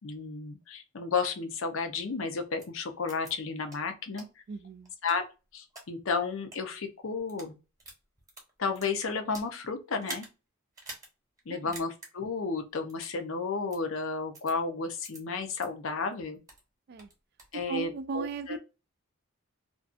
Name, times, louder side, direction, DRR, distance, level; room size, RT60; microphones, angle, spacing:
voice 1, 0.0-4.3 5.0-5.2 5.5-7.6 8.6-10.3 11.5-16.4 17.5-18.6, left 4 dB, 65° left, 0.6 m, -32 dB
sound 1, 2.6-2.7 3.1-3.3 3.7-3.8 4.2-4.3 4.8-5.8 6.4-6.6 7.2-7.5 7.8-9.5 10.0-10.3 10.7-11.1 11.4-11.5 11.7-12.1 12.9-13.2 13.7-13.8 14.3-14.5 15.0-15.2 15.6-15.7 16.1-16.6 17.0-17.6, right 2 dB, 15° right, 0.9 m, -45 dB
voice 2, 4.5-4.9 11.5-11.7 16.9-17.1 17.5-18.6, right 4 dB, 50° right, 0.3 m, -37 dB
2.5 x 2.3 x 2.4 m
head